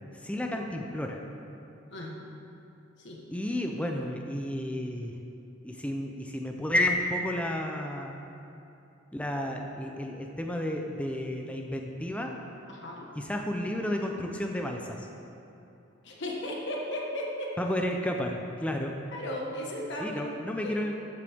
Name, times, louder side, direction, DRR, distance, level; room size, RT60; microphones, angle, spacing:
voice 1, 0.1-1.2 3.3-5.2 5.6-8.1 9.1-12.3 13.2-15.1 17.6-18.9 20.0-21.0, left 1 dB, 5° left, 2 dB, 0.6 m, -31 dB
voice 2, 12.7-13.1 16.0-17.5 19.1-20.2 20.6-20.7, left 1 dB, 60° left, -2 dB, 1.4 m, -36 dB
14.0 x 8.0 x 3.5 m, 2.8 s
head